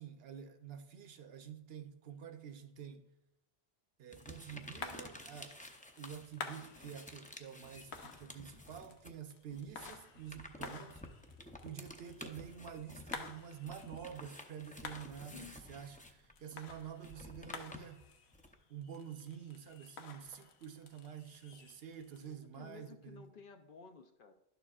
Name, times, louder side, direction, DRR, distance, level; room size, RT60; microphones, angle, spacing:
voice 1, 0.0-3.1 4.0-5.6 6.0-11.0 11.6-18.0 18.7-23.4, right 8 dB, 70° right, 0.9 m, -48 dB
sound 1, 4.1-9.2 9.5-18.5, left 1 dB, 10° left, 0.4 m, -52 dB
sound 2, 4.2-22.3, left 5 dB, 80° left, 1.0 m, -52 dB
voice 2, 15.3-15.6 22.2-24.3, left 5 dB, 60° left, 0.7 m, -54 dB
11.5 x 6.8 x 2.4 m
omnidirectional pair, 1.1 m